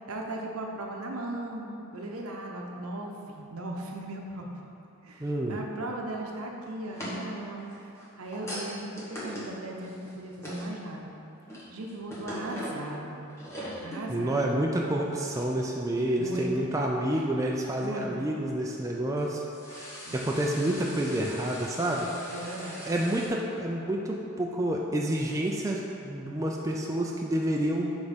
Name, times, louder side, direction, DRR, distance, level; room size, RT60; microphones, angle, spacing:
voice 1, 0.1-4.8 5.0-11.1 11.7-13.3 13.7-14.6 16.2-16.7 17.8-18.2 20.1-20.2 22.3-22.9, right 1 dB, 75° right, 1 dB, 0.7 m, -37 dB
voice 2, 5.2-5.6 14.1-19.9 20.1-22.1 22.9-28.0, right 1 dB, 15° right, -1 dB, 0.3 m, -29 dB
sound 1, 6.9-10.9 11.3-12.9 13.3-14.1 14.4-14.5 15.4-15.5 16.3-16.7 17.1-17.2 18.8-23.3, equal, 10° left, 1.1 m, -41 dB
6.3 x 3.5 x 5.1 m, 2.9 s
head